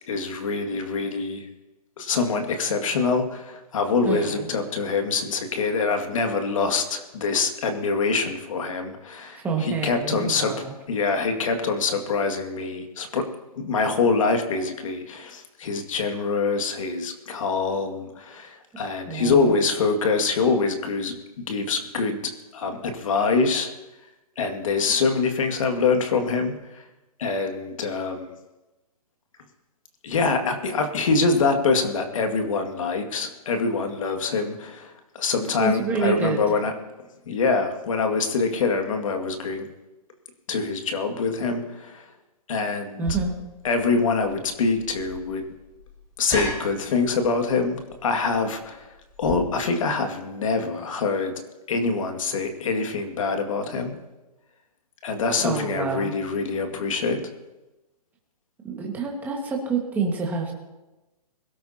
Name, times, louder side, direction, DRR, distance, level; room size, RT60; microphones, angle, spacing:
voice 1, 0.1-1.5 2.0-10.5 10.9-13.3 13.6-22.2 22.5-23.7 24.4-26.8 27.2-28.3 30.0-36.7 37.3-39.7 40.5-42.1 42.5-43.0 43.6-45.4 46.2-48.9 49.2-51.3 51.7-53.9 55.0-57.2, left 4 dB, 55° left, 5 dB, 2.2 m, -25 dB
voice 2, 4.0-4.5 9.3-10.7 19.1-19.6 35.6-36.4 43.0-43.3 55.4-56.1 58.6-60.5, right 5 dB, 10° right, 0 dB, 1.7 m, -27 dB
sound 1, 43.0-49.3, left 1 dB, 20° left, 4.8 m, -37 dB
22.5 x 13.0 x 2.9 m, 1.1 s
hypercardioid pair, 160°, 20 cm